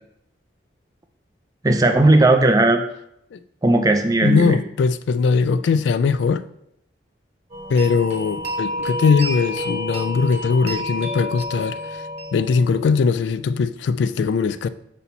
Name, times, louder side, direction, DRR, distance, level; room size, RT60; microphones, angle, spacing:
voice 1, 1.6-2.8 3.6-4.6, right 2 dB, 20° right, 0.5 m, -16 dB
voice 2, 4.2-6.4 7.7-14.7, left 5 dB, 80° left, 0.3 m, -20 dB
sound 1, 7.5-13.2, equal, 35° right, 1.2 m, -30 dB
4.2 x 4.2 x 5.6 m
head